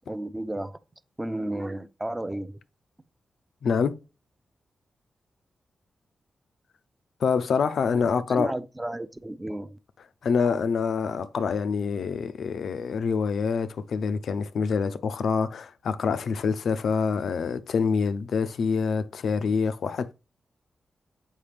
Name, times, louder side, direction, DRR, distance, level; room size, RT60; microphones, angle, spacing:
voice 1, 0.1-0.8 1.2-2.6 7.9-9.8, right 1 dB, 15° right, 0.4 m, -33 dB
voice 2, 3.6-4.0 7.2-8.5 10.2-20.1, left 5 dB, 75° left, 0.5 m, -26 dB
7.2 x 4.9 x 3.3 m
wide cardioid pair, 115°, 0 cm